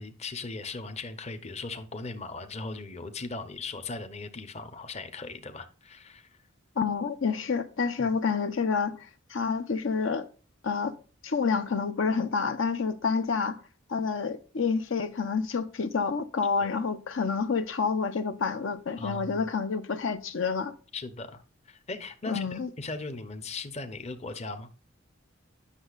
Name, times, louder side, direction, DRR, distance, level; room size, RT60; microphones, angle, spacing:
voice 1, 0.0-6.3 8.0-8.1 16.6-16.7 19.0-19.4 20.9-21.4 21.7-24.7, left 3 dB, 30° left, 0.7 m, -38 dB
voice 2, 6.8-10.3 10.6-10.9 11.2-13.6 13.9-20.7 22.3-22.7, left 5 dB, 65° left, 0.6 m, -28 dB
9.8 x 6.3 x 2.4 m
head